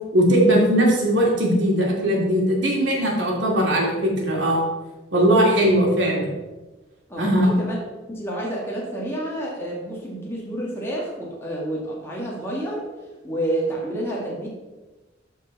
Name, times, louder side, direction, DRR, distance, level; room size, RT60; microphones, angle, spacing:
voice 1, 0.1-4.6 5.1-6.3 7.2-7.5, right 1 dB, 70° right, -2 dB, 2.5 m, -19 dB
voice 2, 7.1-7.8 8.1-12.8 13.2-14.5, right 1 dB, 15° left, -5 dB, 1.7 m, -29 dB
12.5 x 4.7 x 4.0 m, 1.2 s
head